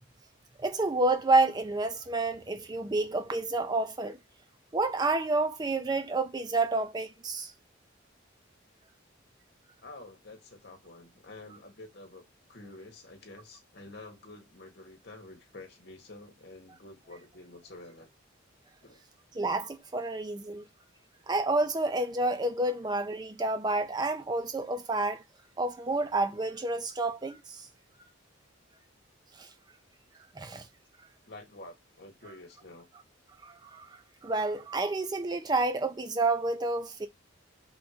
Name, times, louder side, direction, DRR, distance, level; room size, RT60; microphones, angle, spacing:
voice 1, 0.6-4.2 4.7-7.5 19.4-20.6 21.3-25.2 25.6-27.7 29.4-29.5 30.4-30.7 33.4-37.1, right 2 dB, 20° right, 0.4 m, -29 dB
voice 2, 9.8-18.1 18.8-19.0 22.8-22.9 31.2-32.9, left 2 dB, 55° left, 1.1 m, -49 dB
3.6 x 2.6 x 4.6 m
head